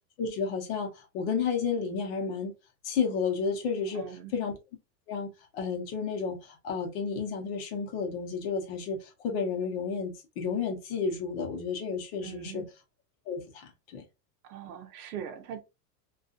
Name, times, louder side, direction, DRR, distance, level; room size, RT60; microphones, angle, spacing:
voice 1, 0.2-2.5 2.8-4.0 4.3-4.6 5.1-12.7 13.3-14.0, left 5 dB, 40° left, 0.7 m, -32 dB
voice 2, 3.9-4.3 12.2-12.7 14.4-15.6, right 9 dB, 65° right, 0.8 m, -41 dB
2.3 x 2.3 x 2.5 m
supercardioid pair, 150°, 49 cm